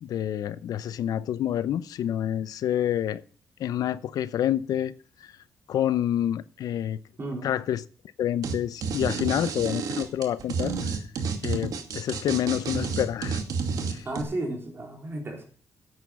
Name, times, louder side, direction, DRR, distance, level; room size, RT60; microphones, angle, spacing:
voice 1, 0.0-3.2 3.6-4.9 5.2-5.3 5.7-7.0 7.4-7.8 8.2-11.0 11.4-13.4 13.9-14.0, left 11 dB, 85° left, 0.7 m, -28 dB
voice 2, 7.2-7.5 14.0-15.4, right 1 dB, 40° right, 4.0 m, -33 dB
sound 1, 8.4-8.5 8.8-14.2, right 5 dB, 80° right, 2.4 m, -30 dB
11.0 x 8.5 x 7.2 m
cardioid pair, 90°, 6 cm